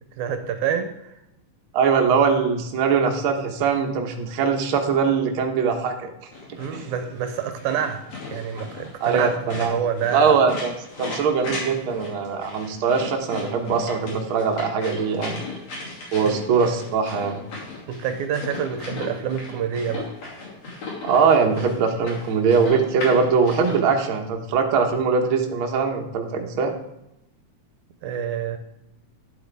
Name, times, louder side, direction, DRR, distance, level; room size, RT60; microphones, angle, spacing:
voice 1, 0.2-1.2 6.6-10.4 16.0-16.3 17.9-20.1 28.0-28.6, right 8 dB, 80° right, 8 dB, 2.0 m, -27 dB
voice 2, 1.7-6.1 6.5-6.9 9.0-9.8 10.1-10.7 11.0-15.4 16.1-17.4 21.0-26.7, right 5 dB, 60° right, 2 dB, 1.4 m, -21 dB
sound 1, 6.3-23.8, left 2 dB, 55° left, 3.6 m, -36 dB
10.5 x 7.9 x 3.4 m, 0.86 s
omnidirectional pair, 3.6 m